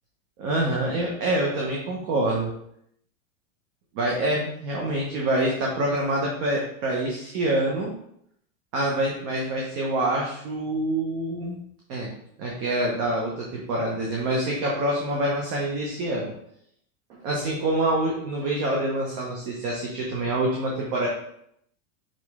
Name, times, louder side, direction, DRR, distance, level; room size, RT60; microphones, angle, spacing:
voice 1, 0.4-2.5 3.9-7.9 8.7-12.1 12.4-16.3 17.1-21.1, right 1 dB, 35° right, -2 dB, 1.0 m, -26 dB
5.3 x 5.2 x 3.6 m, 0.73 s
supercardioid pair, 170°, 41 cm